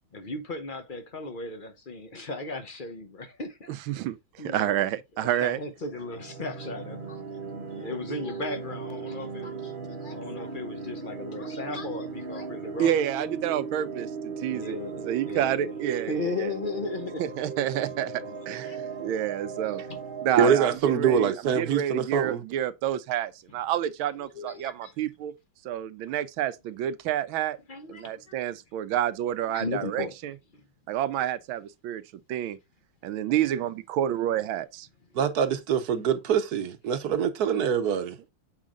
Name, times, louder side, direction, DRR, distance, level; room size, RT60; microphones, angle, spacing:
voice 1, 0.1-3.7 4.4-4.9 5.2-7.2 7.7-13.0 14.5-15.7 16.1-17.2 18.6-19.0 19.7-20.0 24.3-24.9 27.7-28.4 29.5-30.1 30.5-30.6, left 3 dB, 45° left, 0.6 m, -36 dB
voice 2, 3.7-5.6 12.8-14.8 15.0-16.5 17.2-19.8 20.2-25.3 25.6-27.6 27.9-30.3 30.9-32.0 32.3-32.6 33.0-34.9, right 11 dB, 80° right, 1.5 m, -29 dB
sound 1, 5.8-20.8, right 5 dB, 35° right, 0.9 m, -37 dB
voice 3, 20.4-22.4 35.1-38.2, right 7 dB, 60° right, 1.2 m, -24 dB
7.4 x 4.8 x 3.7 m
omnidirectional pair, 2.2 m